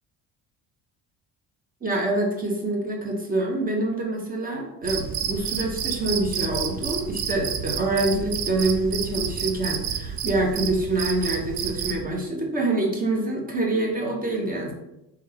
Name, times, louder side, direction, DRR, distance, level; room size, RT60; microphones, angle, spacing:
voice 1, 1.8-14.7, right 2 dB, 20° right, 0 dB, 1.0 m, -26 dB
Cricket, 4.8-12.0, right 7 dB, 90° right, 0.5 m, -30 dB
3.5 x 3.4 x 3.3 m, 0.90 s
cardioid pair, 105°, 38 cm